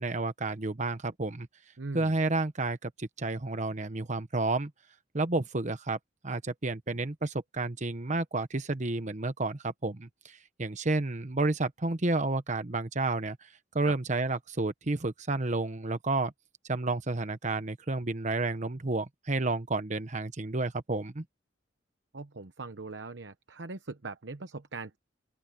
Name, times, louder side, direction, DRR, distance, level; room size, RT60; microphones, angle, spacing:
voice 1, 0.0-1.5 1.9-4.7 5.1-6.0 6.2-13.4 13.7-16.3 16.7-21.2, right 2 dB, 40° right, 1.1 m, -31 dB
voice 2, 1.8-2.2 13.8-13.9 22.1-25.0, right 3 dB, 70° right, 1.0 m, -41 dB
open air
head